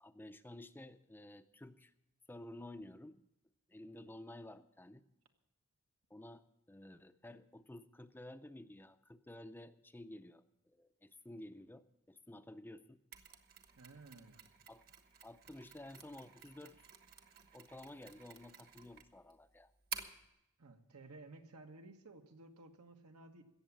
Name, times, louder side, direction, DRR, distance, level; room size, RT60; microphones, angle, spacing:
voice 1, 0.0-1.9 2.3-3.2 3.7-5.0 6.1-6.4 6.7-13.0 14.7-14.8 15.2-16.9 17.5-19.7, left 1 dB, 10° left, 10 dB, 0.5 m, -53 dB
Mechanisms, 13.1-20.3, right 7 dB, 45° right, 1.2 m, -52 dB
voice 2, 13.8-14.4 20.6-23.4, right 2 dB, 85° right, 5 dB, 1.4 m, -56 dB
16.5 x 7.2 x 8.7 m, 0.87 s
head